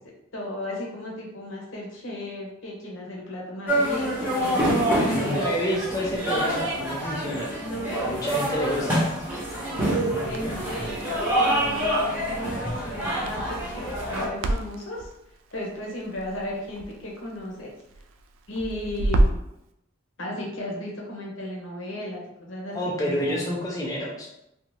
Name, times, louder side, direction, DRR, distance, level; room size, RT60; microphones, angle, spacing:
voice 1, 0.3-5.5 7.2-9.0 9.6-15.1 15.5-17.7 18.5-19.4 20.2-23.5, left 1 dB, 80° left, -2 dB, 0.8 m, -35 dB
sound 1, 3.7-14.2, right 1 dB, 10° right, 0.8 m, -26 dB
voice 2, 5.1-7.5 8.0-9.1 10.1-10.6 22.7-24.3, equal, 15° left, -3 dB, 0.4 m, -29 dB
Crackle, 10.2-19.5, right 1 dB, 80° right, 0.3 m, -31 dB
2.6 x 2.3 x 3.0 m, 0.82 s
head